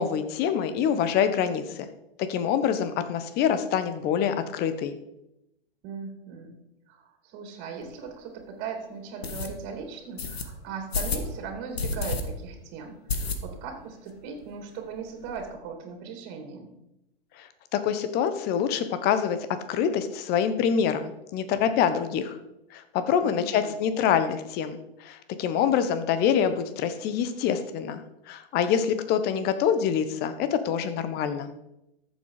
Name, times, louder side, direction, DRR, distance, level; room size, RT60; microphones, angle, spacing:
voice 1, 0.0-1.9 2.2-4.9 17.4-19.4 19.7-22.4 22.7-28.0 28.3-31.5, left 8 dB, 35° left, 11 dB, 1.3 m, -26 dB
voice 2, 5.8-6.5 6.9-16.7 23.2-23.8, right 5 dB, 40° right, 4 dB, 2.8 m, -38 dB
sound 1, 7.8-7.9 8.4-8.5 9.2-9.5 10.2-10.4 10.9-11.3 11.7-12.2 12.5-12.6 13.1-13.7 14.1-14.2 14.4-14.5 14.8-15.4, left 4 dB, 85° left, 1.7 m, -30 dB
14.0 x 7.5 x 4.9 m, 0.87 s
hypercardioid pair, 120°, 30 cm